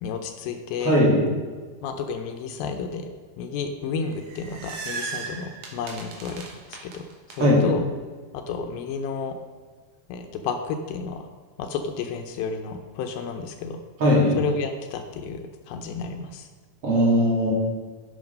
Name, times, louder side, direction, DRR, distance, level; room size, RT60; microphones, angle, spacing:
voice 1, 0.0-1.0 1.8-3.0 3.4-7.0 7.3-7.9 8.3-9.4 10.1-11.2 11.6-13.8 14.4-16.5, left 5 dB, 85° left, 5 dB, 2.5 m, -31 dB
voice 2, 0.8-1.2 7.4-7.7 14.0-14.4 16.8-17.5, equal, 45° right, -5 dB, 3.2 m, -19 dB
sound 1, 4.0-7.4, right 5 dB, 65° right, 2.6 m, -36 dB
11.0 x 6.9 x 5.3 m, 1.5 s
omnidirectional pair, 4.2 m